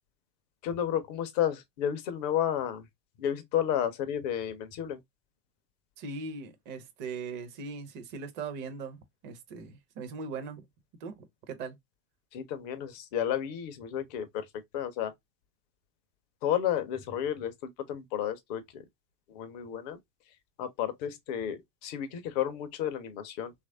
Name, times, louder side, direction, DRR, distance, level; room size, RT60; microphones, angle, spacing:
voice 1, 0.6-2.8 3.2-5.0 12.3-14.5 14.7-15.1 16.4-18.8 19.3-20.0 20.6-23.5, left 10 dB, 30° left, 0.4 m, -32 dB
voice 2, 6.0-10.7 11.0-11.8, right 4 dB, 25° right, 0.5 m, -40 dB
3.0 x 2.4 x 2.5 m
figure-of-eight pair, 95°, 50 cm